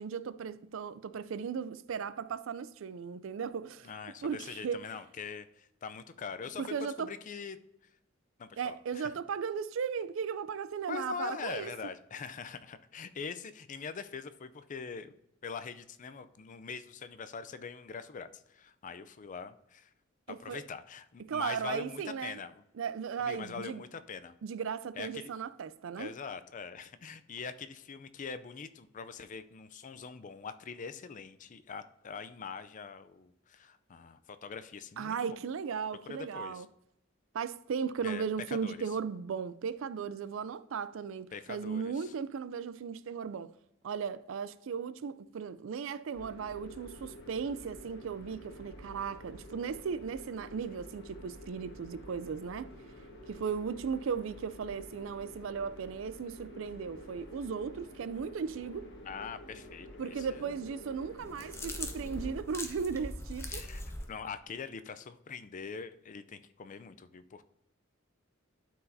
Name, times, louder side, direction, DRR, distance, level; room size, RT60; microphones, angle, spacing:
voice 1, 0.0-3.9 4.2-4.8 6.6-7.1 8.6-11.7 20.3-20.6 21.3-22.4 22.8-23.8 24.4-26.1 35.0-36.7 37.3-43.5 43.8-52.7 53.3-58.9 60.0-63.6, right 6 dB, 70° right, 0.4 m, -36 dB
voice 2, 3.8-7.6 8.4-9.1 10.9-15.1 15.4-19.9 20.3-22.6 23.2-24.4 25.0-25.3 26.0-35.4 36.1-36.7 38.0-38.8 41.3-42.1 59.0-60.6 63.5-63.8 64.1-67.4, left 5 dB, 40° left, 0.4 m, -43 dB
sound 1, 46.1-62.3, equal, 60° left, 1.4 m, -50 dB
sound 2, 61.2-64.1, left 1 dB, 15° left, 0.7 m, -41 dB
11.5 x 4.8 x 2.7 m
head